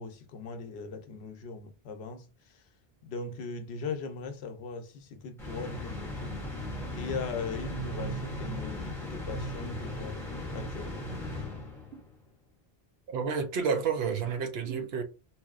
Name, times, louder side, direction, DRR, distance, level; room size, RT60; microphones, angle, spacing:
voice 1, 0.0-2.3 2.5-2.6 3.0-6.4 6.9-10.2 10.5-11.1, left 4 dB, 80° left, 0.9 m, -39 dB
sound 1, 5.4-12.1, equal, 5° left, 0.8 m, -37 dB
voice 2, 13.1-15.0, right 6 dB, 75° right, 0.9 m, -30 dB
3.0 x 2.6 x 2.4 m
omnidirectional pair, 1.1 m